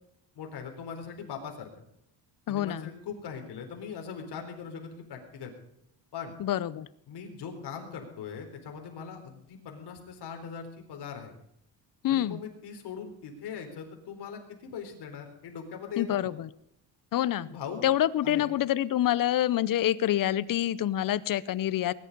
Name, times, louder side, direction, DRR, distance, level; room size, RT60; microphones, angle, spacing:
voice 1, 0.4-1.7 2.5-5.5 6.1-6.3 7.1-11.3 12.1-16.3 17.4-17.9 18.2-18.5, left 6 dB, 65° left, 3 dB, 4.1 m, -40 dB
voice 2, 2.5-2.9 6.4-6.9 12.0-12.4 16.0-16.5 17.1-17.5 17.8-21.9, left 12 dB, 50° left, 18 dB, 0.7 m, -27 dB
20.5 x 11.0 x 5.3 m, 0.75 s
cardioid pair, 160°, 43 cm